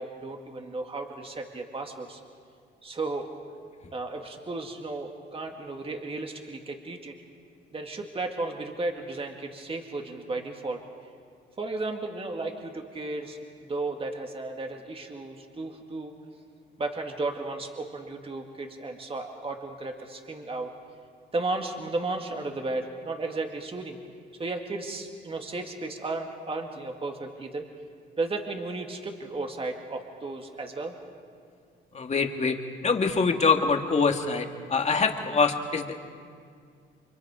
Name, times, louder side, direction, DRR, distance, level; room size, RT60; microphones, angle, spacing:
voice 1, 0.0-2.2 2.8-3.3 3.9-7.1 7.7-10.8 11.6-16.1 16.8-20.7 21.3-24.0 24.4-27.6 28.2-30.9, right 2 dB, 30° right, 3 dB, 2.1 m, -34 dB
voice 2, 31.9-32.6 32.8-36.0, left 4 dB, 35° left, 4 dB, 2.2 m, -24 dB
29.5 x 24.5 x 5.0 m, 2.1 s
cardioid pair, 90°, 20 cm